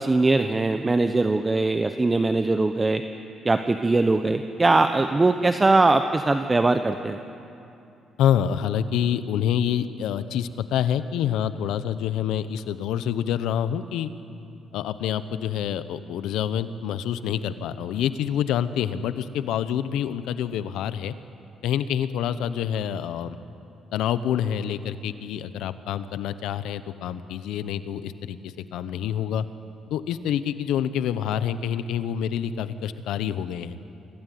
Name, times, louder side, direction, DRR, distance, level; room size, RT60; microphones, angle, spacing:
voice 1, 0.0-3.0 3.4-7.2, right 3 dB, 20° right, 8 dB, 0.9 m, -21 dB
voice 2, 8.2-14.1 14.7-21.1 21.6-23.4 23.9-29.4 29.9-33.8, left 9 dB, 85° left, 13 dB, 0.9 m, -27 dB
25.0 x 16.5 x 9.4 m, 2.7 s
cardioid pair, 90°, 0 cm